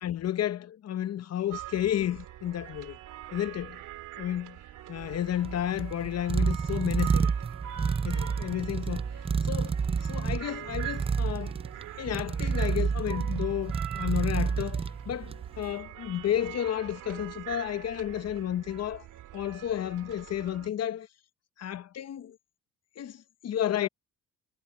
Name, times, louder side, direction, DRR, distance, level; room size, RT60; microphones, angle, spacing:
voice 1, 0.0-3.0 3.3-3.8 4.2-4.6 4.9-7.3 8.0-9.0 9.4-9.8 10.0-11.5 12.0-19.0 19.3-21.1 21.6-22.4 23.0-23.9, left 11 dB, 55° left, 0.9 m, -32 dB
sound 1, 1.5-20.7, right 13 dB, 85° right, 2.4 m, -44 dB
sound 2, 5.0-15.6, right 5 dB, 20° right, 0.4 m, -30 dB
cardioid pair, 90°, 30 cm